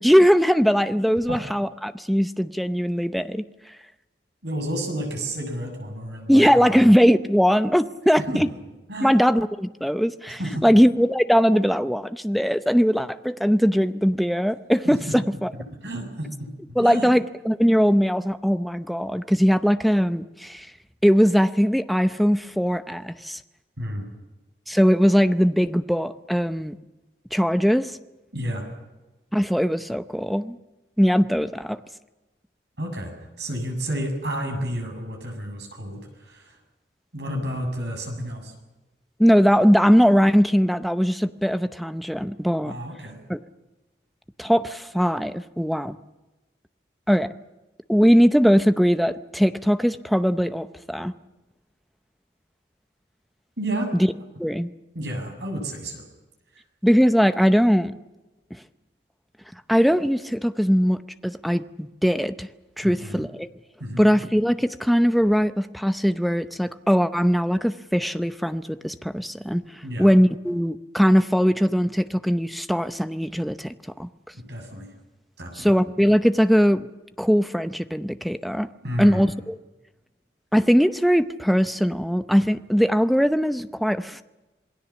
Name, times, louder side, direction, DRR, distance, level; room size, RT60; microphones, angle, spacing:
voice 1, 0.0-3.4 6.3-8.5 9.0-15.5 16.8-20.7 21.0-23.4 24.7-26.8 27.3-28.0 29.3-30.6 31.0-31.8 39.2-42.7 43.3-43.4 44.4-46.0 47.1-47.3 47.9-51.1 54.4-54.7 56.8-57.9 59.7-62.5 62.8-63.5 64.0-69.6 70.0-74.1 75.6-76.9 77.2-78.7 79.0-79.6 80.5-84.2, equal, ahead, 10 dB, 0.7 m, -20 dB
voice 2, 4.4-6.5 8.2-8.4 8.9-9.1 10.4-10.7 14.8-15.2 15.8-16.5 16.8-17.1 23.8-24.1 28.3-28.7 32.8-33.1 33.4-36.6 37.1-38.5 42.6-43.2 53.6-53.9 54.9-56.0 62.8-63.3 63.8-64.1 69.8-70.1 74.3-74.9 75.4-75.7 78.8-79.2, right 1 dB, 70° right, 3 dB, 7.3 m, -31 dB
27.0 x 20.0 x 7.2 m, 1.1 s
head